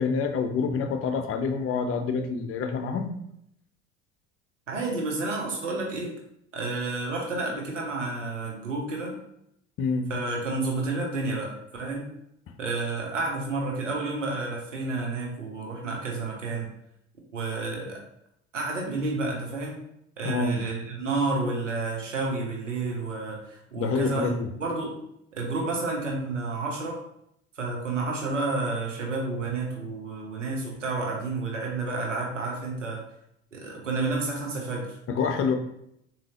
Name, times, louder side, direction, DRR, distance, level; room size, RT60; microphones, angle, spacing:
voice 1, 0.0-3.1 9.8-10.1 20.2-20.7 23.8-24.5 35.1-35.5, left 5 dB, 40° left, 6 dB, 0.6 m, -27 dB
voice 2, 4.7-6.1 6.5-9.1 10.1-12.1 12.6-16.7 17.3-18.0 18.5-19.8 20.2-24.3 24.6-24.9 25.3-27.0 27.6-33.0 33.5-35.0, right 3 dB, 90° right, -1 dB, 0.8 m, -30 dB
3.8 x 2.8 x 2.8 m, 0.75 s
figure-of-eight pair, 65°, 36 cm